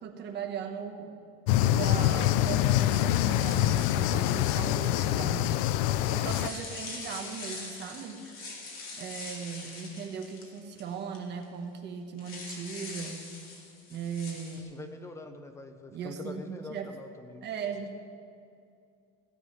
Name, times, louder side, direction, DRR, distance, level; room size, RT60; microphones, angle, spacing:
voice 1, 0.0-1.1 1.7-8.2 9.0-13.2 13.9-14.7 15.9-16.9 17.4-17.9, right 6 dB, 30° right, 5 dB, 1.1 m, -38 dB
sound 1, 1.5-6.5, left 13 dB, 65° left, 0.5 m, -25 dB
sound 2, 3.4-5.0 6.0-11.2 11.4-11.5 12.2-14.6, left 3 dB, 40° left, 2.3 m, -43 dB
voice 2, 14.7-17.5, left 2 dB, 10° left, 7 dB, 0.4 m, -44 dB
16.0 x 7.9 x 5.4 m, 2.5 s
cardioid pair, 170°, 35 cm